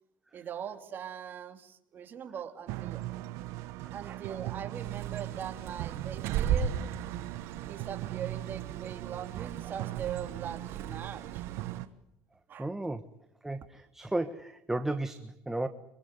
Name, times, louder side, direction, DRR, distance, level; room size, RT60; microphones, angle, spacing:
voice 1, 0.3-3.0 3.9-6.8 7.3-11.7 12.5-12.7, right 8 dB, 40° right, 6 dB, 3.0 m, -41 dB
sound 1, 2.7-11.9, right 16 dB, 70° right, 1.2 m, -39 dB
Bird, 4.7-11.8, right 8 dB, 55° right, 6.4 m, -37 dB
voice 2, 12.6-13.0 13.4-15.7, right 2 dB, 5° right, 8 dB, 1.3 m, -34 dB
25.5 x 23.0 x 9.6 m, 0.79 s
cardioid pair, 120°, 5 cm